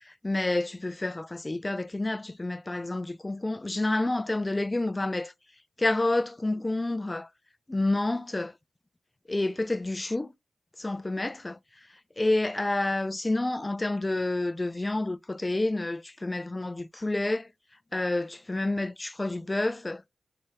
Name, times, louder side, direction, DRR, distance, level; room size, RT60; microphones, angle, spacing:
voice 1, 0.1-5.3 5.8-7.3 7.7-8.5 9.3-10.3 10.8-11.6 12.2-17.5 17.9-20.0, left 2 dB, 25° left, 0.4 m, -29 dB
4.3 x 3.5 x 2.9 m
cardioid pair, 60°, 0 cm